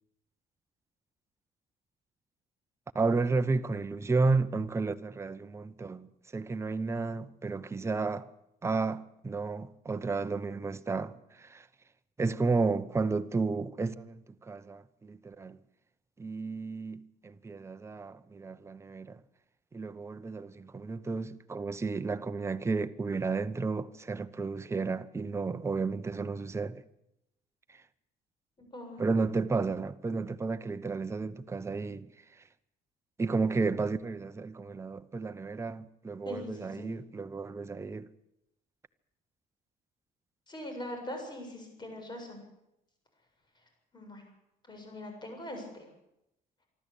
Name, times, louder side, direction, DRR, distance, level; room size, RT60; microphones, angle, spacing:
voice 1, 2.9-6.1 6.3-8.3 8.6-11.7 12.2-15.6 16.2-19.2 19.7-26.8 27.7-27.8 29.0-32.1 33.2-38.1, right 4 dB, 15° right, 0.8 m, -32 dB
voice 2, 28.6-29.1 36.2-36.9 40.5-42.4 43.9-44.2 44.7-45.8, left 1 dB, 25° left, 7.4 m, -42 dB
25.0 x 12.5 x 8.5 m
cardioid pair, 110°, 17 cm